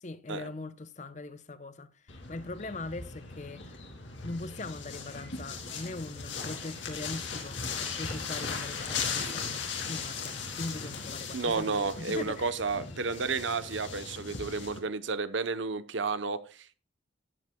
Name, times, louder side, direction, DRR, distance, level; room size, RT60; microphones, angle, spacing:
voice 1, 0.0-3.8 4.2-7.6 8.0-12.6, left 2 dB, 35° left, 0.6 m, -41 dB
sound 1, 2.1-14.8, left 5 dB, 70° left, 2.6 m, -38 dB
voice 2, 11.3-16.7, right 4 dB, 70° right, 0.8 m, -32 dB
13.0 x 11.0 x 2.2 m
head